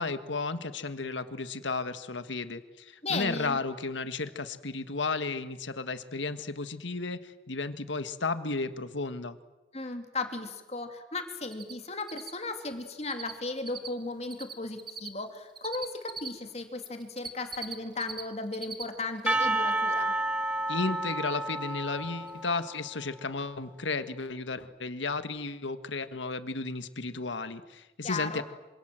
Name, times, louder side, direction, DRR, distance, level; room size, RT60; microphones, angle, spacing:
voice 1, 0.0-9.4 20.7-28.4, left 3 dB, 85° left, 11 dB, 1.7 m, -33 dB
voice 2, 3.0-3.6 9.7-20.1 28.0-28.4, left 3 dB, 35° left, 6 dB, 2.6 m, -36 dB
Cricket, 11.5-11.7 12.0-16.3 16.8-18.2 18.5-18.8 19.2-19.3 21.8-21.9 22.3-22.4 22.6-22.7, right 6 dB, 25° right, 1.6 m, -40 dB
Percussion, 19.3-23.2, right 2 dB, 5° right, 1.2 m, -30 dB
27.0 x 26.0 x 7.7 m, 1.1 s
head